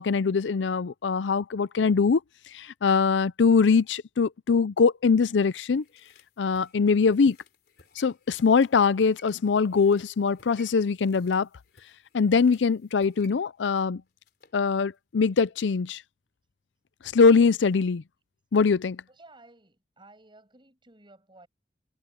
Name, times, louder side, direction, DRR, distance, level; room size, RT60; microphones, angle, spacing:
voice 1, 0.0-2.2 2.5-5.8 6.4-7.4 8.0-11.5 12.1-14.0 14.5-16.0 17.1-18.0 18.5-19.0, left 5 dB, 80° left, 0.5 m, -22 dB
inflating-tires, 5.2-14.6 14.9-15.0, left 3 dB, 60° left, 3.7 m, -59 dB
voice 2, 19.1-21.5, right 2 dB, 25° right, 6.1 m, -54 dB
head